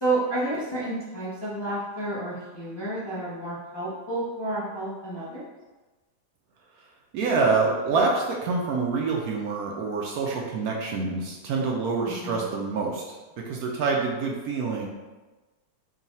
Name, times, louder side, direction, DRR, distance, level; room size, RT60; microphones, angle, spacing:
voice 1, 0.0-5.5 12.0-12.5, right 2 dB, 35° left, -9 dB, 0.4 m, -30 dB
voice 2, 7.1-13.0 13.4-14.9, right 4 dB, 70° right, -1 dB, 1.0 m, -26 dB
3.9 x 2.3 x 4.1 m, 1.2 s
omnidirectional pair, 1.8 m